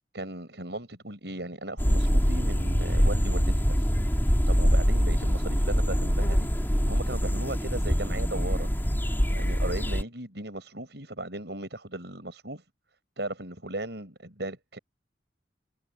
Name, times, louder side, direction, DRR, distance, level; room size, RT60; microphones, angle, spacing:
voice 1, 0.1-3.9 4.2-8.7 9.3-12.6 13.2-14.8, right 1 dB, 70° right, 6.3 m, -37 dB
sound 1, 1.8-10.0, equal, 10° left, 4.1 m, -24 dB
head